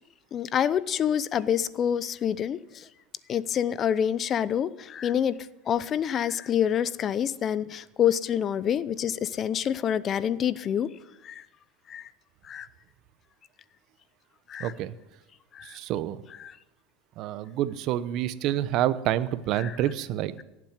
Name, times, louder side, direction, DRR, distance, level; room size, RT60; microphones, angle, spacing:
voice 1, 0.3-2.9 3.3-5.4 5.7-10.9 11.2-11.4 11.9-12.1 12.4-12.7 14.5-14.7 15.5-15.8 16.4-16.6 19.6-19.7, left 9 dB, 35° left, 17 dB, 0.7 m, -27 dB
voice 2, 14.6-14.9 15.6-16.2 17.2-20.3, right 12 dB, 50° right, 14 dB, 0.9 m, -28 dB
17.5 x 7.6 x 9.4 m, 0.95 s
supercardioid pair, 135°, 0 cm